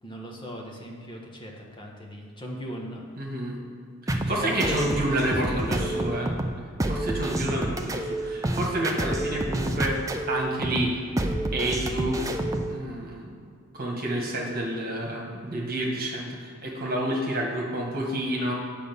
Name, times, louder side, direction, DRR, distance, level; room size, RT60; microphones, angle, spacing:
voice 1, 0.0-3.0 4.2-6.1, equal, 20° left, -1 dB, 1.2 m, -38 dB
voice 2, 3.2-3.6 4.0-6.3 6.9-10.0 10.3-11.1 11.5-12.2 12.7-13.3 13.7-18.5, right 1 dB, 40° right, -1 dB, 1.7 m, -29 dB
sound 1, 4.1-12.7, right 1 dB, 15° right, 0.4 m, -29 dB
8.7 x 5.2 x 7.0 m, 2.2 s
head